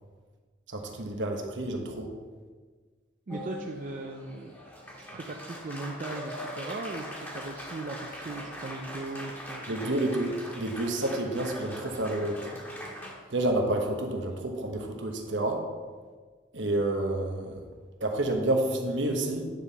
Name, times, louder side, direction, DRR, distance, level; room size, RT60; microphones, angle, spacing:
voice 1, 0.7-2.1 9.7-12.6 13.3-15.6 16.5-17.5 18.0-19.5, right 1 dB, 75° right, 3 dB, 1.2 m, -29 dB
Applause, 3.3-13.1, equal, 10° left, 1.6 m, -41 dB
voice 2, 3.3-4.6 5.1-7.1 7.3-9.9, right 3 dB, 45° right, 3 dB, 0.4 m, -38 dB
9.7 x 5.5 x 4.1 m, 1.5 s
head